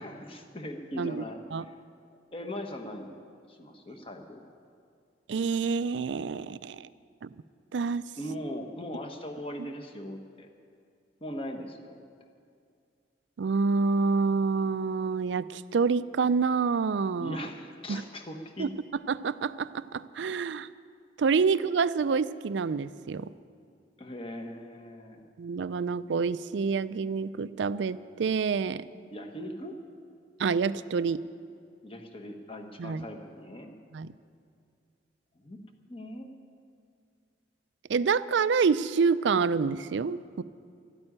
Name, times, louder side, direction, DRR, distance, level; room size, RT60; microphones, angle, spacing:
voice 1, 0.0-1.8 2.3-4.4 8.2-10.5 11.2-12.0 17.2-18.7 24.0-25.2 29.1-29.8 31.8-33.8 35.3-35.6 35.9-36.3, equal, 30° left, 4 dB, 1.2 m, -40 dB
voice 2, 5.3-6.9 7.2-7.3 7.7-8.0 13.4-17.4 17.9-18.0 18.6-18.7 19.1-20.7 21.2-23.3 25.4-28.9 30.4-31.2 32.8-33.0 33.9-34.1 37.9-40.4, right 5 dB, 80° right, 16 dB, 0.4 m, -27 dB
13.0 x 8.9 x 9.9 m, 2.3 s
head